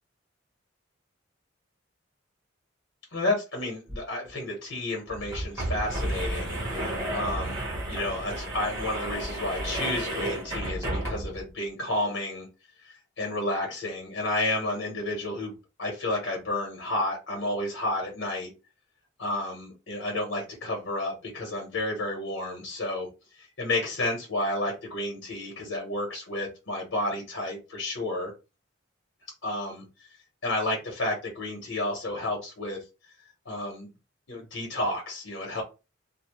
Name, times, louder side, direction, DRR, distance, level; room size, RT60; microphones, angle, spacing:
voice 1, 3.1-12.5 12.8-15.5 15.8-18.5 19.2-23.1 23.4-28.3 29.4-29.8 30.4-32.8 33.4-33.9 34.3-35.6, left 1 dB, 80° left, 0 dB, 0.9 m, -31 dB
sound 1, 3.9-4.0 4.3-4.4 5.1-11.5, right 1 dB, 20° right, 0.9 m, -32 dB
2.6 x 2.0 x 3.0 m, 0.29 s
head